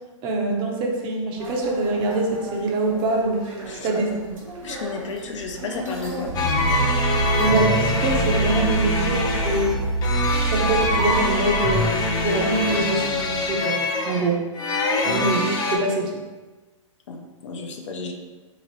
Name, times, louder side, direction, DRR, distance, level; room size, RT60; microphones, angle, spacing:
voice 1, 0.2-3.5 3.8-4.4 7.4-9.8 10.2-11.9 12.2-14.4 15.0-16.2, right 2 dB, 30° right, 0 dB, 0.6 m, -24 dB
sound 1, 1.4-12.9, equal, 85° right, 1.2 m, -38 dB
voice 2, 3.7-4.2 4.6-6.3 7.2-7.5 15.1-15.2 17.1-18.1, left 3 dB, 65° left, 3 dB, 0.6 m, -33 dB
sound 2, 6.3-15.8, left 3 dB, 25° left, 0.6 m, -24 dB
sound 3, 6.3-13.5, right 3 dB, 65° right, 1.1 m, -26 dB
3.8 x 2.9 x 3.0 m, 1.2 s
hypercardioid pair, 115°, 17 cm